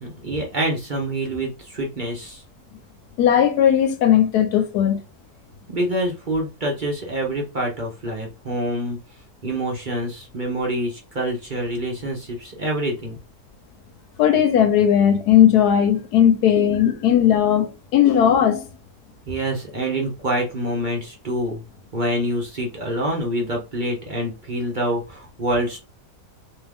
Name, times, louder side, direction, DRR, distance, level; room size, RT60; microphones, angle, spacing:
voice 1, 0.0-2.4 5.7-9.0 9.4-13.2 19.3-21.6 21.9-25.8, right 1 dB, 40° right, 0.8 m, -26 dB
voice 2, 3.2-5.0 14.2-18.6, left 9 dB, 85° left, 1.3 m, -17 dB
3.5 x 2.9 x 3.5 m
omnidirectional pair, 1.6 m